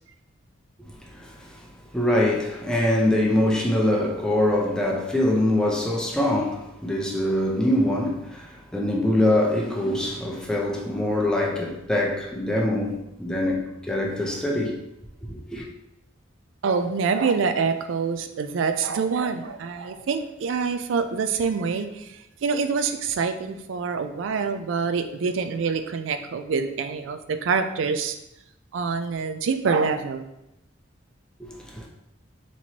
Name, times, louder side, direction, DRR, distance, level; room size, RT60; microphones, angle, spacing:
voice 1, 1.2-1.5 1.9-14.7 15.5-15.7 31.4-31.9, left 1 dB, 5° left, 0.6 m, -24 dB
voice 2, 16.6-28.2 28.7-30.3, right 5 dB, 70° right, 0.4 m, -26 dB
4.2 x 3.0 x 2.8 m
head